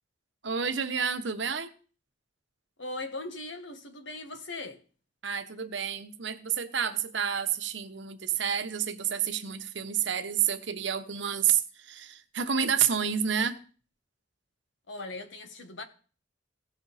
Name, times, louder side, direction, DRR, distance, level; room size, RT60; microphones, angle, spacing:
voice 1, 0.4-1.7 5.2-13.6, right 8 dB, 85° right, 1.0 m, -29 dB
voice 2, 2.8-4.8 14.9-15.8, left 2 dB, 90° left, 1.5 m, -39 dB
17.0 x 6.0 x 4.1 m
head